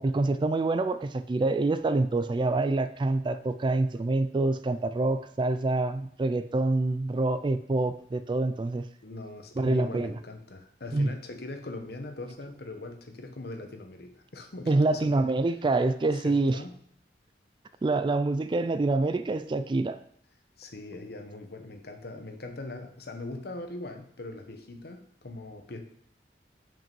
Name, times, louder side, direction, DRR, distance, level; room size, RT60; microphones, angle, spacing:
voice 1, 0.0-8.8 9.6-10.1 10.9-11.1 14.7-16.6 17.8-20.0, right 2 dB, 25° right, 12 dB, 0.3 m, -26 dB
voice 2, 9.0-15.6 16.1-16.8 20.6-25.8, left 2 dB, 60° left, 5 dB, 1.0 m, -41 dB
5.7 x 5.2 x 5.3 m, 0.65 s
head